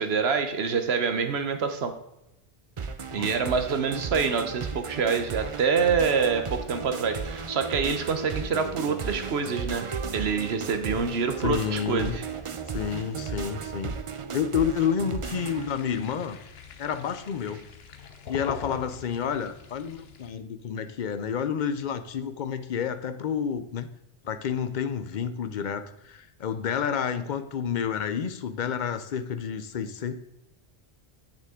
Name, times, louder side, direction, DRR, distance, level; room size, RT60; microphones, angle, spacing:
voice 1, 0.0-1.9 3.1-12.3, right 5 dB, 85° right, 7 dB, 1.2 m, -26 dB
sound 1, 2.8-15.7, right 5 dB, 40° right, 0.5 m, -35 dB
voice 2, 11.4-12.2 12.7-14.0 14.3-16.4 16.8-17.7 18.3-23.9 24.2-30.2, left 7 dB, 55° left, 11 dB, 0.7 m, -29 dB
sound 2, 15.2-20.3, left 6 dB, 75° left, 1.0 m, -43 dB
8.3 x 6.6 x 3.7 m, 0.88 s
omnidirectional pair, 1.0 m